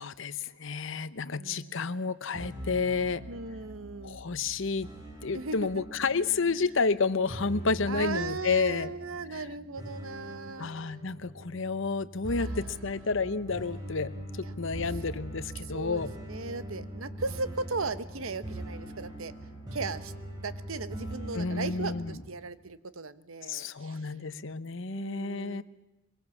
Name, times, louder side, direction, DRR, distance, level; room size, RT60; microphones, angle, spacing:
voice 1, 0.0-3.2 4.0-4.9 5.2-8.9 9.3-9.4 10.6-16.1 21.3-22.2 23.5-25.6, left 4 dB, 65° left, 14 dB, 0.9 m, -30 dB
voice 2, 1.3-1.9 3.3-4.2 5.3-5.8 7.9-10.7 12.4-12.8 14.4-14.5 15.7-19.3 19.7-20.1 20.4-24.1 24.9-25.6, right 3 dB, 85° right, 13 dB, 1.1 m, -37 dB
sound 1, 2.3-22.1, right 1 dB, 20° right, 7.2 m, -42 dB
23.0 x 22.5 x 7.2 m, 0.98 s
head